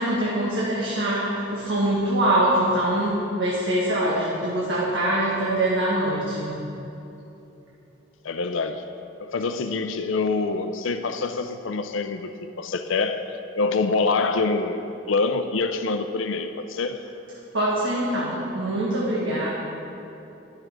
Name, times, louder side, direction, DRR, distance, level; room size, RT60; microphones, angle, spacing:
voice 1, 0.0-6.5 17.5-19.5, right 1 dB, 80° right, -7 dB, 1.7 m, -24 dB
voice 2, 8.2-8.9 9.2-13.3 13.6-17.0 19.3-19.5, left 3 dB, 80° left, 9 dB, 0.5 m, -26 dB
11.0 x 6.3 x 6.1 m, 2.9 s
head